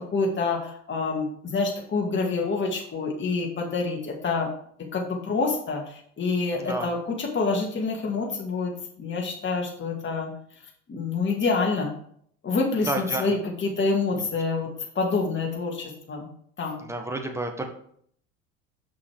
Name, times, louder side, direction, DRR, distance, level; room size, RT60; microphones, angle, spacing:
voice 1, 0.0-4.5 4.8-5.8 6.2-8.7 9.0-10.3 10.9-11.9 12.4-16.3 16.6-16.8, left 4 dB, 30° left, 0 dB, 2.1 m, -27 dB
voice 2, 6.6-6.9 12.8-13.4 16.8-17.6, right 2 dB, 5° right, 4 dB, 1.4 m, -30 dB
6.4 x 5.9 x 4.8 m, 0.63 s
hypercardioid pair, 65°, 38 cm